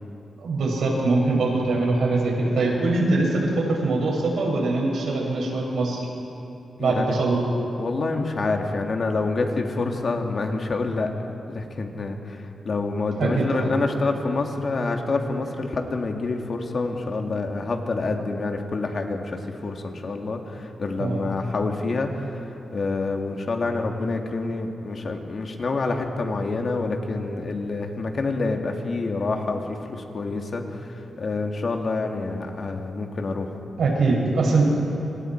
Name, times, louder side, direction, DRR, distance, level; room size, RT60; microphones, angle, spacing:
voice 1, 0.4-6.0 6.8-7.4 13.2-13.7 21.0-21.3 33.8-34.6, right 3 dB, 80° right, -2 dB, 6.3 m, -22 dB
voice 2, 6.8-7.2 7.8-11.1 11.5-22.4 22.7-33.5, left 3 dB, 45° left, 3 dB, 2.1 m, -27 dB
29.0 x 26.0 x 4.6 m, 2.8 s
wide cardioid pair, 130°, 0 cm